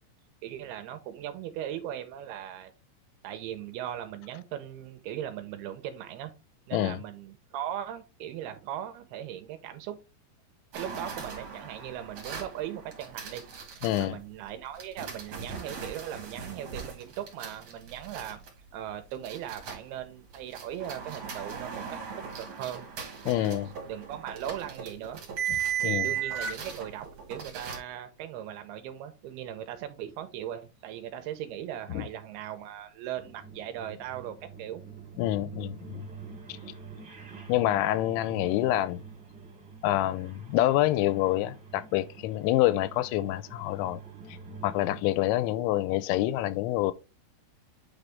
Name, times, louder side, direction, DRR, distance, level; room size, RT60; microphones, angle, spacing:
voice 1, 0.4-2.7 3.2-6.3 6.7-10.0 10.7-13.4 13.7-18.4 18.7-21.9 22.4-22.9 23.3-25.2 25.8-34.8, right 11 dB, 80° right, 2.5 m, -39 dB
voice 2, 6.7-7.0 13.8-14.2 23.3-23.7 25.8-26.1 31.9-32.1 35.2-36.0 37.5-39.0 39.8-44.0 44.6-46.9, left 14 dB, 90° left, 2.9 m, -27 dB
sound 1, 10.7-14.0 14.8-20.0 20.3-27.8, right 8 dB, 50° right, 2.2 m, -37 dB
sound 2, 33.2-45.0, right 4 dB, 30° right, 2.2 m, -46 dB
8.9 x 4.1 x 3.5 m
omnidirectional pair, 5.2 m